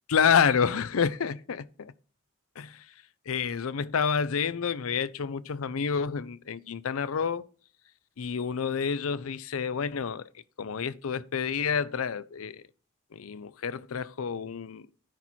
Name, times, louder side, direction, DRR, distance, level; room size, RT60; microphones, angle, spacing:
voice 1, 0.1-1.9 2.6-2.8 3.3-7.4 8.2-10.3 10.6-12.6 13.1-14.9, left 6 dB, 80° left, 0.5 m, -28 dB
10.5 x 4.2 x 4.4 m
head